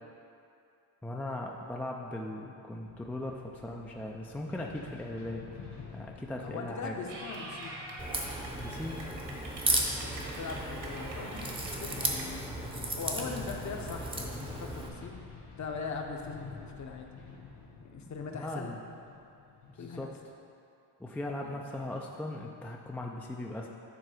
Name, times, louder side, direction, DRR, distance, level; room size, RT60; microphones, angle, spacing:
voice 1, 1.0-5.4 5.9-6.9 8.6-9.0 13.3-13.5 18.3-18.8 19.7-20.1 21.0-23.7, left 1 dB, 5° left, 0 dB, 0.3 m, -38 dB
sound 1, 2.8-20.4, left 5 dB, 65° left, 1.7 m, -50 dB
voice 2, 6.4-7.7 10.0-12.5 13.0-15.1 15.6-17.1 17.8-18.8 19.8-20.1 21.4-21.6, left 4 dB, 40° left, 2 dB, 0.8 m, -40 dB
Clapping / Cheering, 7.1-12.2, right 1 dB, 65° right, 1.6 m, -44 dB
Crack, 8.0-14.9, right 1 dB, 10° right, 0.7 m, -35 dB
9.2 x 3.7 x 4.9 m, 2.6 s
cardioid pair, 110°, 45 cm